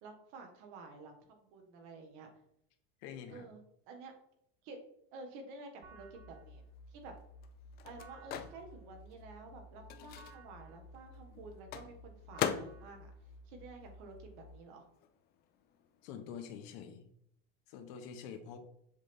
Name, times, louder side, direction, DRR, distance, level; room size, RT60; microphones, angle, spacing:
voice 1, 0.0-2.3 3.3-3.6 3.9-4.1 4.6-4.8 5.1-6.6 6.9-7.2 7.8-13.1 13.5-14.8, right 3 dB, 60° right, 4 dB, 1.5 m, -51 dB
voice 2, 3.0-3.5 16.0-17.1 17.7-18.6, left 7 dB, 60° left, 7 dB, 1.0 m, -46 dB
sound 1, 5.8-14.5, left 1 dB, 35° right, 0.9 m, -55 dB
Microwave oven, 6.4-14.6 14.8-16.7, left 9 dB, 35° left, 0.4 m, -43 dB
7.3 x 3.8 x 3.5 m, 0.73 s
cardioid pair, 160°, 29 cm